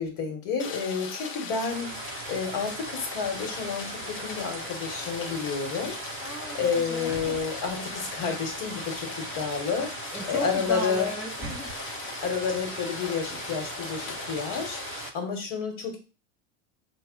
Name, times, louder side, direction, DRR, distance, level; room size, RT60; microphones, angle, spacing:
voice 1, 0.0-1.9 2.3-6.0 6.5-9.9 10.3-11.1 12.2-16.0, left 5 dB, 60° left, 4 dB, 1.3 m, -30 dB
Rain, 0.6-15.1, left 5 dB, 35° left, 0.7 m, -39 dB
sound 1, 1.7-15.1, right 8 dB, 40° right, 0.4 m, -41 dB
voice 2, 6.2-7.4 10.1-11.7, equal, 5° right, 2 dB, 1.3 m, -35 dB
4.6 x 2.2 x 3.7 m, 0.34 s
hypercardioid pair, 95°, 38 cm